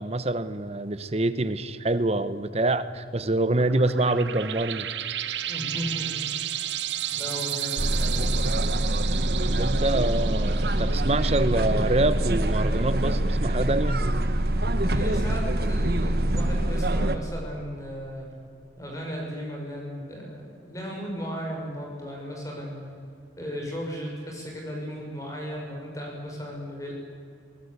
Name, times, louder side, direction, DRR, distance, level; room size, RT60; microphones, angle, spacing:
voice 1, 0.0-4.9 9.6-14.0, right 2 dB, 35° right, 13 dB, 1.0 m, -26 dB
sound 1, 3.5-12.6, right 12 dB, 85° right, 0.9 m, -34 dB
voice 2, 5.4-6.3 7.1-8.4 14.7-18.3 18.8-23.0 23.4-26.9, equal, 20° left, -1 dB, 5.9 m, -35 dB
sound 2, 7.8-17.2, right 1 dB, 60° right, 1.3 m, -24 dB
23.5 x 19.0 x 8.3 m, 2.4 s
head